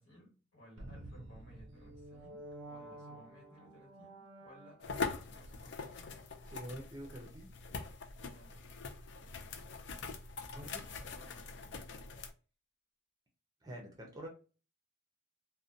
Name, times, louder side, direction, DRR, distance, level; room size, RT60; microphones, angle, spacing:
voice 1, 0.0-6.1 8.2-8.8 9.1-9.7 10.6-11.8, equal, 70° left, -1 dB, 1.3 m, -60 dB
sound 1, 0.8-5.2, right 1 dB, 70° right, 0.4 m, -51 dB
sound 2, 4.8-12.3, left 4 dB, 55° left, 0.3 m, -43 dB
voice 2, 6.5-7.5 10.5-10.8 13.6-14.3, equal, 20° right, 1 dB, 0.5 m, -47 dB
2.6 x 2.1 x 2.5 m, 0.35 s
head